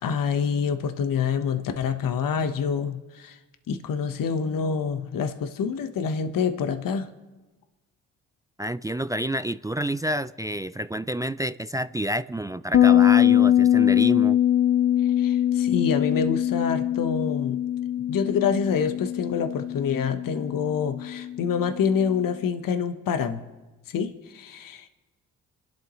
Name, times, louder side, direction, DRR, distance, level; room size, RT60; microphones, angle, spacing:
voice 1, 0.0-3.4 3.7-7.1 15.0-17.6 18.1-23.4 23.9-24.9, left 6 dB, 60° left, 1.2 m, -27 dB
voice 2, 8.6-14.4, right 1 dB, 10° right, 0.4 m, -29 dB
Bass guitar, 12.7-22.1, left 11 dB, 40° left, 0.6 m, -22 dB
27.5 x 12.0 x 3.1 m
hypercardioid pair, 50°, 37 cm